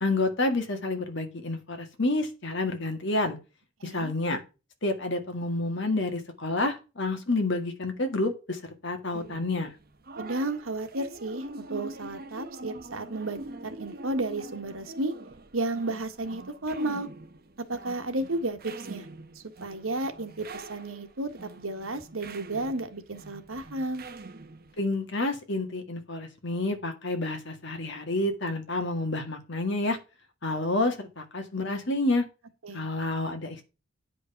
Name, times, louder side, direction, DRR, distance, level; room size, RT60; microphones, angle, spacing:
voice 1, 0.0-3.4 3.8-4.4 4.8-9.7 24.8-30.0 30.4-32.3 32.7-33.6, left 2 dB, 60° left, 1.9 m, -29 dB
sound 1, 9.1-24.8, right 2 dB, 45° right, 1.0 m, -44 dB
voice 2, 10.1-15.1 15.5-17.1 17.6-19.1 19.3-24.1 32.6-32.9, right 2 dB, 85° right, 1.5 m, -33 dB
9.5 x 5.2 x 5.8 m
head